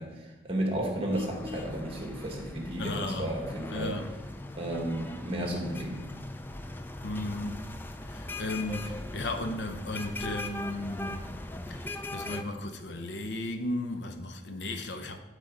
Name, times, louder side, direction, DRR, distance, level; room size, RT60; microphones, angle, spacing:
voice 1, 0.0-4.0 4.5-6.0, right 1 dB, 30° right, 1.6 m, -33 dB
sound 1, 1.1-12.4, left 2 dB, 10° left, 0.3 m, -40 dB
voice 2, 2.8-3.3 3.7-4.1 7.0-7.6 8.1-11.3 11.7-15.2, left 2 dB, 65° left, 0.7 m, -35 dB
12.0 x 4.9 x 3.8 m
head